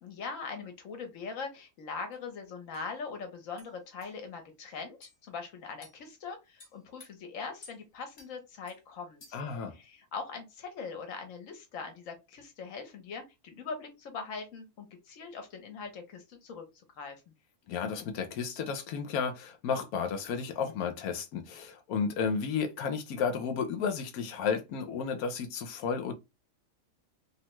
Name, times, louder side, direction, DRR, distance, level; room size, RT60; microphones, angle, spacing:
voice 1, 0.0-9.4 9.7-16.6 17.0-17.2, left 5 dB, 65° left, 1.2 m, -41 dB
sound 1, 2.1-2.2 2.7-2.9 3.6-3.7 4.0-4.1 5.0-5.2 5.8-6.0 6.6-7.1 7.6-7.8 8.2-8.3 8.7-8.8 9.2-9.5, left 3 dB, 45° left, 0.8 m, -53 dB
voice 2, 9.3-9.8 17.7-26.1, left 6 dB, 85° left, 1.1 m, -32 dB
3.0 x 2.2 x 2.9 m
omnidirectional pair, 1.5 m